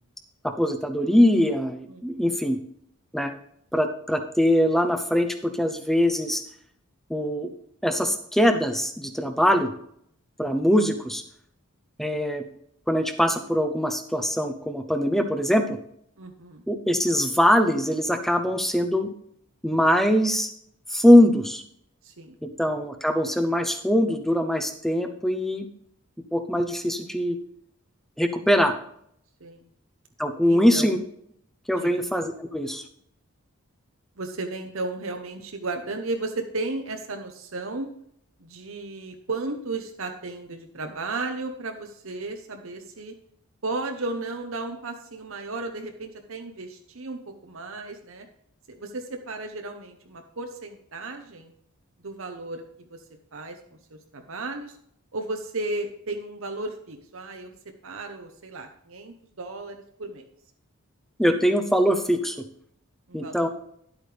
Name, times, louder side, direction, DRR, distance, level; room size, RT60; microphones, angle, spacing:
voice 1, 0.4-2.6 3.1-3.3 3.7-6.4 7.1-7.5 7.8-9.7 10.4-11.2 12.0-12.4 12.9-15.8 16.7-19.1 19.6-20.5 20.9-21.6 22.4-25.7 26.3-27.4 28.2-28.7 30.2-31.0 31.7-32.8 61.2-62.4 63.1-63.5, equal, ahead, 8 dB, 0.7 m, -22 dB
voice 2, 1.9-2.3 16.2-16.6 22.0-22.4 29.4-29.7 30.5-30.9 31.7-32.0 34.2-37.9 38.4-43.1 43.6-48.3 48.7-51.5 52.0-53.0 53.3-53.6 53.9-54.8 55.1-57.5 57.8-60.2 63.1-63.5, right 2 dB, 65° right, 4 dB, 0.9 m, -34 dB
11.0 x 8.2 x 3.4 m, 0.69 s
head